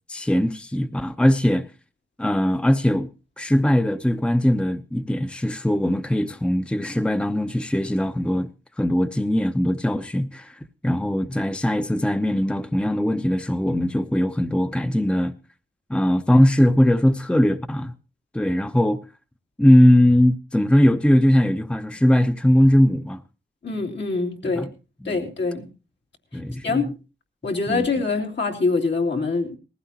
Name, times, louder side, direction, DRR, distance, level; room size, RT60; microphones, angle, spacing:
voice 1, 0.1-1.7 2.2-3.1 3.4-8.5 8.8-10.5 10.8-15.3 15.9-17.9 18.3-19.0 19.6-23.2 24.5-24.7 25.0-25.2 26.3-26.8 27.7-27.9, equal, 5° left, 0.7 m, -20 dB
voice 2, 23.6-24.7 25.0-25.7 26.6-26.9 27.4-29.6, left 3 dB, 70° left, 2.9 m, -24 dB
19.5 x 15.5 x 2.9 m
wide cardioid pair, 75°, 19 cm